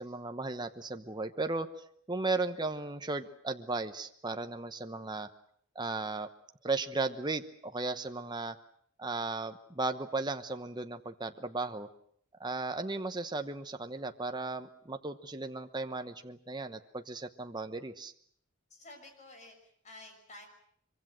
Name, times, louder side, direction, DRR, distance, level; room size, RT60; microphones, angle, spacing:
voice 1, 0.0-1.7 2.1-5.3 5.7-6.3 6.6-8.6 9.0-11.9 12.4-18.1, right 3 dB, 20° right, 7 dB, 1.0 m, -36 dB
voice 2, 18.7-20.5, left 2 dB, 35° left, 4 dB, 6.3 m, -51 dB
24.0 x 24.0 x 7.6 m, 0.64 s
head